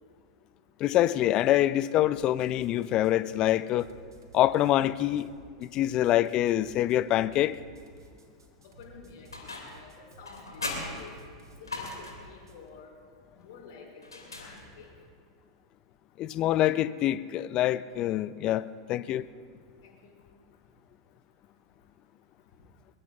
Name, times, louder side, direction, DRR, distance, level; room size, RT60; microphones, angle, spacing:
voice 1, 0.8-3.9 4.3-5.3 5.6-7.6 16.2-19.2, left 13 dB, 35° left, 17 dB, 0.5 m, -25 dB
sound 1, 2.0-12.7, right 3 dB, 75° right, 1.6 m, -54 dB
voice 2, 8.6-9.9 10.2-11.2 11.6-12.9 13.3-14.9 19.8-20.2, left 5 dB, 55° left, -2 dB, 4.9 m, -50 dB
sound 2, 9.3-9.9 10.2-12.3 14.0-15.0, left 2 dB, 80° left, 2.4 m, -39 dB
22.0 x 21.5 x 2.4 m, 2.1 s
figure-of-eight pair, 90°, 2 cm